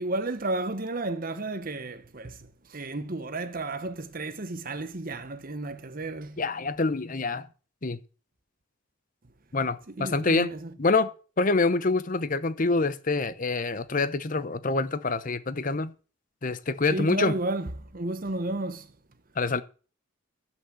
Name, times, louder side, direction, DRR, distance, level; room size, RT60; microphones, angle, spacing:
voice 1, 0.0-6.4 10.0-10.7 16.9-17.7 17.9-18.9, right 2 dB, 45° right, 1.0 m, -32 dB
voice 2, 6.4-7.5 7.8-8.0 9.5-10.5 10.8-15.9 16.4-17.4 19.4-19.6, left 3 dB, 40° left, 0.8 m, -26 dB
14.0 x 5.9 x 7.6 m
head